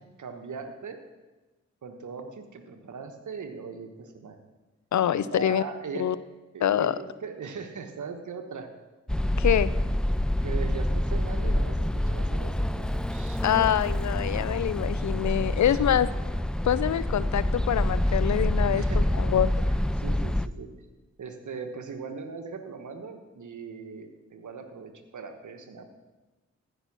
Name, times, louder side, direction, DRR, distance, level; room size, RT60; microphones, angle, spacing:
voice 1, 0.2-1.0 1.8-4.4 5.1-6.1 6.5-8.7 10.4-13.4 15.3-15.8 18.7-19.2 19.7-20.7 21.2-25.9, right 5 dB, 75° right, 6 dB, 1.3 m, -39 dB
voice 2, 4.9-5.6 6.0-6.2 6.6-6.9 9.4-9.7 13.4-16.1 16.6-19.5, left 10 dB, 70° left, 16 dB, 0.5 m, -25 dB
sound 1, 9.1-20.5, left 1 dB, 5° left, 0.4 m, -27 dB
14.5 x 5.9 x 6.0 m, 1.2 s
cardioid pair, 40°, 30 cm